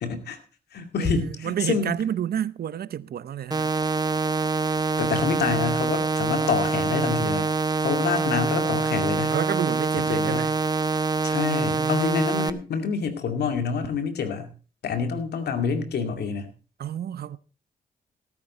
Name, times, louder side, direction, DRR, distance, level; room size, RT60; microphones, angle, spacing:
voice 1, 0.0-0.4 0.7-1.9 5.0-7.5 7.8-9.3 10.1-10.5 11.2-14.5 14.8-16.5, left 6 dB, 75° left, 2.3 m, -27 dB
voice 2, 1.0-3.7 9.3-10.6 11.8-12.3 16.8-17.4, right 10 dB, 65° right, 0.7 m, -30 dB
sound 1, 3.5-12.5, right 4 dB, 25° right, 1.0 m, -25 dB
17.0 x 9.6 x 4.3 m
supercardioid pair, 55°, 17 cm